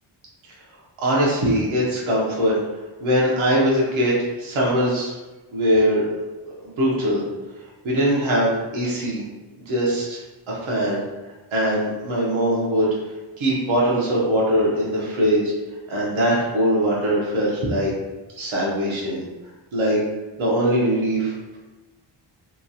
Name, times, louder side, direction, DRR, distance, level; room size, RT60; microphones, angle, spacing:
voice 1, 1.0-2.5 3.0-4.1 4.4-5.1 5.5-6.0 6.8-7.2 7.8-9.2 9.7-10.2 10.5-11.0 11.5-12.9 13.4-15.4 15.9-17.9 18.4-19.2 19.7-20.0 20.4-21.3, equal, 80° right, -5 dB, 0.7 m, -21 dB
2.9 x 2.3 x 2.6 m, 1.1 s
wide cardioid pair, 180°, 47 cm